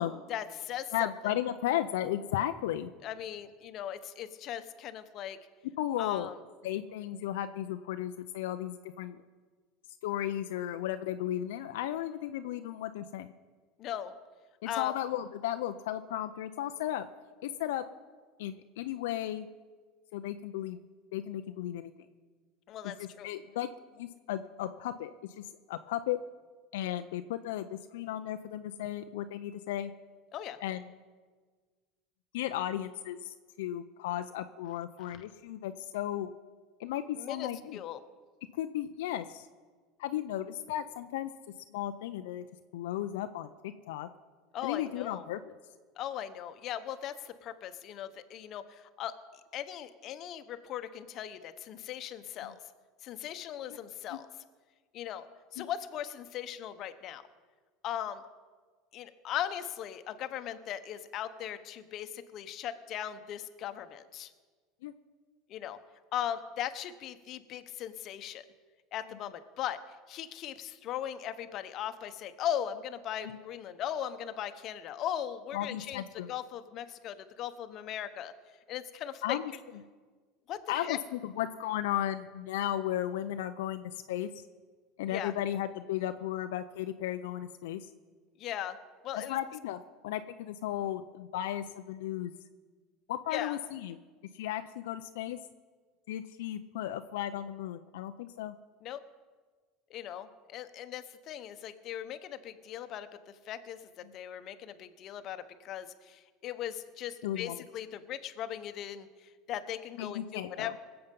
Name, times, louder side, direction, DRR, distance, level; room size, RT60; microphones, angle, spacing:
voice 1, 0.3-1.3 3.0-5.4 6.0-6.3 13.8-14.1 14.7-14.9 22.7-23.3 30.3-30.6 35.1-35.2 37.2-38.0 44.5-45.3 46.0-49.1 49.5-52.6 53.0-54.3 54.9-55.3 55.5-57.2 57.8-58.2 58.9-64.3 65.5-65.8 66.1-68.4 68.9-69.8 70.1-76.0 76.3-78.3 78.7-79.4 80.5-81.0 85.1-85.3 88.4-88.8 89.0-89.4 93.3-93.6 98.8-99.0 99.9-103.1 103.5-110.8, left 10 dB, 50° left, 10 dB, 0.9 m, -38 dB
voice 2, 0.9-2.9 5.8-6.3 6.6-9.2 10.0-13.3 14.6-17.1 17.4-17.8 18.4-19.5 20.1-20.8 21.1-21.9 23.0-23.7 24.0-26.2 26.7-29.9 30.6-30.8 32.3-36.3 36.8-37.8 38.5-39.5 40.0-41.3 41.7-42.4 42.7-44.1 44.6-45.4 53.7-53.8 54.1-54.2 55.6-55.7 64.8-64.9 73.2-73.4 75.5-76.3 79.2-79.5 80.7-84.3 85.0-87.9 89.1-92.3 93.1-94.0 94.3-95.4 96.1-98.5 107.2-107.6 110.0-110.8, left 12 dB, 85° left, 8 dB, 0.5 m, -35 dB
20.0 x 7.8 x 5.4 m, 1.5 s
supercardioid pair, 120°, 0 cm